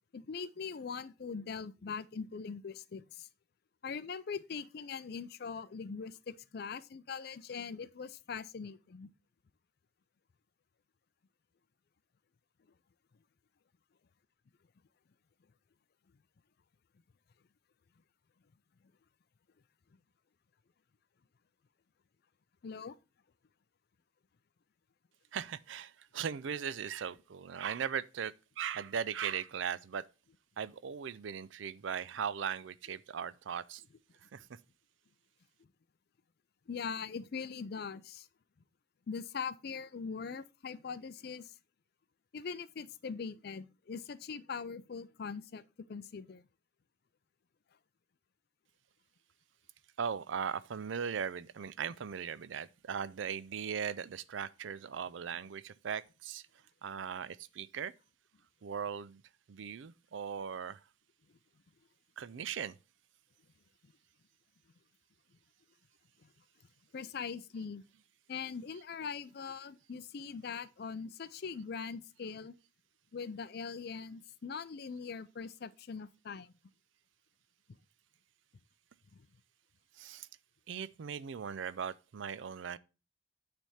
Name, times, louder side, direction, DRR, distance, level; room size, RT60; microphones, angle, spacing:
voice 1, 0.1-3.3 3.8-9.1 22.6-23.0 36.7-38.3 39.1-41.5 42.3-46.4 66.2-66.3 66.9-67.8 68.3-72.5 73.1-76.6 79.1-79.2, left 5 dB, 55° left, 0.4 m, -42 dB
voice 2, 25.3-30.0 30.6-33.8 34.3-34.5 50.0-56.4 56.8-57.9 58.6-59.2 59.5-60.8 62.2-62.8 79.9-80.3 80.7-82.8, right 7 dB, 70° right, 0.4 m, -38 dB
9.1 x 3.4 x 5.6 m
head